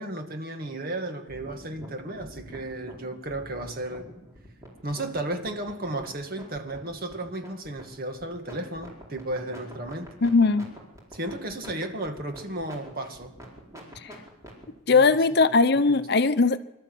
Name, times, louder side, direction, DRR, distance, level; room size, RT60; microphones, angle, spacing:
voice 1, 0.0-4.1 4.8-10.1 11.1-13.4 14.9-15.1 15.4-15.5 15.9-16.1, right 1 dB, 45° right, 5 dB, 2.1 m, -34 dB
sound 1, 1.3-14.7, equal, 15° right, 4.7 m, -45 dB
voice 2, 10.2-10.7 14.0-14.1 14.9-16.6, left 4 dB, 50° left, 12 dB, 0.8 m, -20 dB
25.5 x 13.0 x 7.9 m, 0.92 s
head